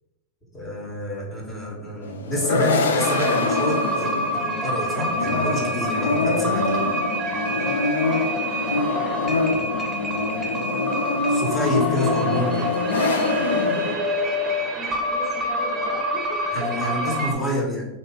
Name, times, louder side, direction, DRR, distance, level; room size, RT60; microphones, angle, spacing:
voice 1, 0.5-6.7 11.3-12.7 16.5-17.9, left 1 dB, 20° left, -3 dB, 1.5 m, -28 dB
sound 1, 2.0-14.0, left 3 dB, 80° left, 0.4 m, -25 dB
sound 2, 3.0-17.3, equal, 25° right, 0.9 m, -27 dB
voice 2, 8.9-9.2 9.5-9.6 14.8-17.6, left 1 dB, ahead, -6 dB, 1.3 m, -38 dB
3.1 x 2.8 x 4.2 m, 1.0 s
hypercardioid pair, 100°, 0 cm